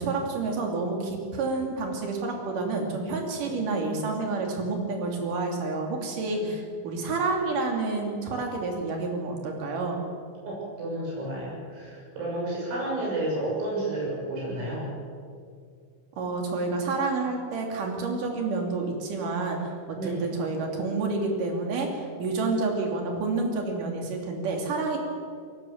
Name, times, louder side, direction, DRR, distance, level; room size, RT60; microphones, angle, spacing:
voice 1, 0.0-10.0 16.2-25.0, right 3 dB, 50° right, 2 dB, 4.0 m, -29 dB
voice 2, 10.4-15.0 19.9-20.2, right 1 dB, 75° right, -3 dB, 9.3 m, -31 dB
22.0 x 19.0 x 7.4 m, 2.2 s
omnidirectional pair, 5.4 m